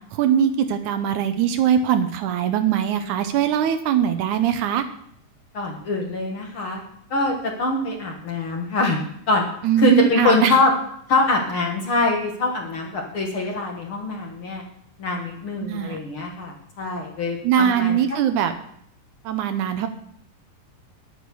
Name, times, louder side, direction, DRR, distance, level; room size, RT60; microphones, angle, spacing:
voice 1, 0.0-4.8 9.6-10.6 15.6-16.0 17.4-18.5 19.3-19.9, right 9 dB, 75° right, 8 dB, 2.0 m, -21 dB
voice 2, 5.5-6.8 7.1-9.0 9.3-9.5 9.8-10.7 11.1-14.6 15.0-18.0, left 2 dB, 50° left, 1 dB, 2.0 m, -23 dB
10.0 x 9.4 x 6.9 m, 0.71 s
omnidirectional pair, 3.8 m